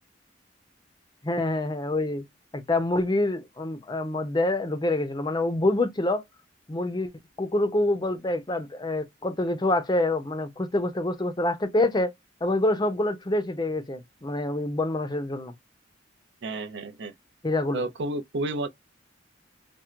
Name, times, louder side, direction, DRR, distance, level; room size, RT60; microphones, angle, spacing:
voice 1, 1.2-2.2 2.5-6.2 6.7-7.1 7.4-12.1 12.4-15.5 17.4-17.8, left 2 dB, 25° left, 0.6 m, -26 dB
voice 2, 16.4-17.1 17.7-18.7, right 2 dB, 65° right, 0.6 m, -31 dB
4.4 x 2.0 x 2.4 m
head